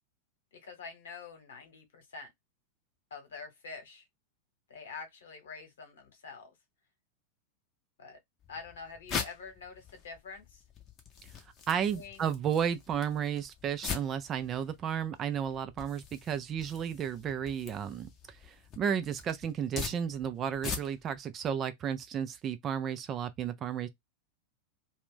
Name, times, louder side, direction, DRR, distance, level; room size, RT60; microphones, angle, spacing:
voice 1, 0.5-2.3 3.1-4.1 4.7-6.5 8.0-8.2 8.5-10.6 11.9-12.3, left 4 dB, 60° left, 1.1 m, -46 dB
sound 1, 8.4-21.2, left 6 dB, 30° left, 0.7 m, -43 dB
voice 2, 11.7-18.1 18.4-23.9, right 8 dB, 30° right, 0.4 m, -33 dB
2.4 x 2.2 x 3.4 m
figure-of-eight pair, 90°, 0 cm